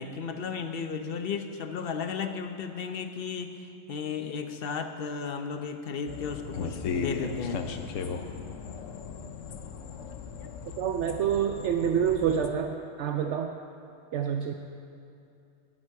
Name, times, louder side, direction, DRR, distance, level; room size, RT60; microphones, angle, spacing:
voice 1, 0.0-7.6 10.4-10.6, left 6 dB, 55° left, 7 dB, 0.9 m, -34 dB
sound 1, 6.1-12.5, left 5 dB, 85° left, 1.1 m, -37 dB
voice 2, 10.8-13.5 14.1-14.5, right 8 dB, 70° right, 5 dB, 0.9 m, -27 dB
17.0 x 9.6 x 4.7 m, 2.7 s
omnidirectional pair, 1.3 m